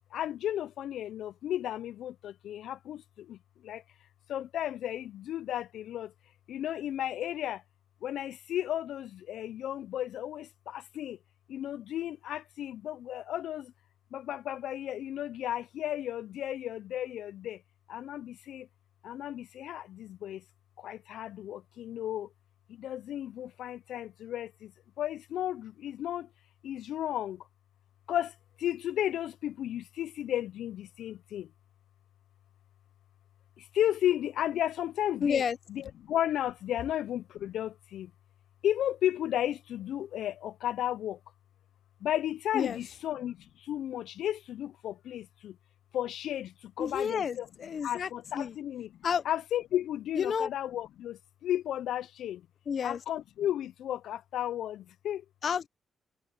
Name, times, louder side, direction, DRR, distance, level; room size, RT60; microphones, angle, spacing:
voice 1, 0.1-3.8 4.3-6.1 6.5-7.6 8.0-11.2 11.5-13.7 14.1-17.6 17.9-18.7 19.0-20.4 20.8-22.3 22.7-24.7 25.0-26.3 26.6-27.4 28.1-31.5 33.6-35.4 35.7-38.1 38.6-41.2 42.0-45.6 45.9-47.5 47.8-49.0 49.3-52.5 52.8-55.2, left 11 dB, 85° left, 0.3 m, -34 dB
voice 2, 35.2-35.6 42.5-42.8 46.8-48.1 48.3-48.5 49.0-49.2 50.1-50.5 52.7-53.0 55.4-55.7, left 7 dB, 55° left, 0.8 m, -30 dB
cardioid pair, 115°, 0 cm